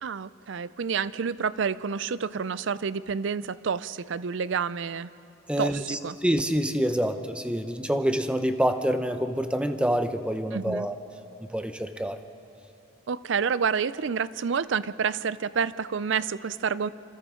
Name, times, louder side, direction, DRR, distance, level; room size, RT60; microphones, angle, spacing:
voice 1, 0.0-5.1 5.6-6.2 10.5-10.9 13.1-16.9, right 6 dB, 65° right, 17 dB, 0.5 m, -29 dB
voice 2, 5.5-11.0 11.5-12.2, equal, 5° right, 8 dB, 0.8 m, -27 dB
27.0 x 26.5 x 3.8 m, 2.7 s
head